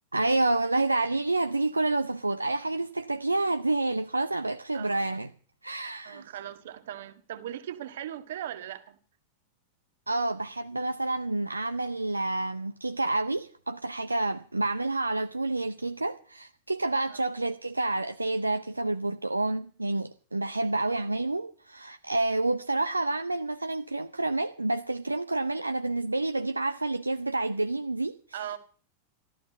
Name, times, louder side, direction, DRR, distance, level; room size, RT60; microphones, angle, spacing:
voice 1, 0.1-5.3 5.6-6.3 10.1-28.4, right 2 dB, 80° right, 0.6 m, -29 dB
voice 2, 4.7-5.1 6.0-9.0 17.1-17.3 28.3-28.6, right 11 dB, 60° right, 1.7 m, -39 dB
14.5 x 13.5 x 5.4 m
figure-of-eight pair, 90°, 0 cm